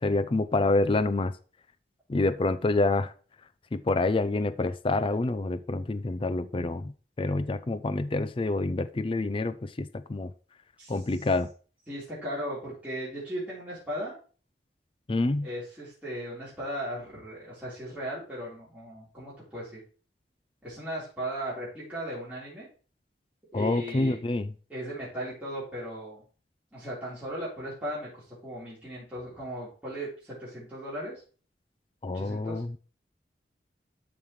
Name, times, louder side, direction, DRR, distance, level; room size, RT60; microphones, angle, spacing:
voice 1, 0.0-1.3 2.1-3.1 3.7-6.9 7.2-10.3 10.9-11.5 15.1-15.5 23.5-24.5 32.0-32.7, left 2 dB, 30° left, 0.4 m, -27 dB
voice 2, 11.9-14.2 15.4-19.8 20.6-22.7 23.5-24.2 24.7-26.2 26.7-31.2 32.1-32.6, right 1 dB, 10° right, 4.0 m, -37 dB
13.0 x 5.4 x 3.2 m
head